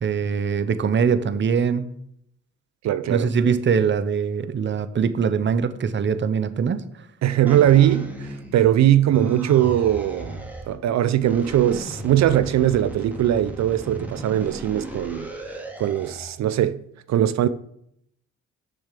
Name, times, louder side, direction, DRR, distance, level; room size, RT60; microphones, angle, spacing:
voice 1, 0.0-1.9 3.1-6.8, right 6 dB, 40° right, 0.9 m, -22 dB
voice 2, 2.8-3.3 7.2-15.5 15.8-16.8 17.1-17.5, right 11 dB, 65° right, 0.6 m, -20 dB
sound 1, 7.5-8.8 9.1-10.7 11.2-16.4, right 1 dB, 5° right, 2.4 m, -36 dB
7.0 x 6.9 x 7.5 m
cardioid pair, 90°, 30 cm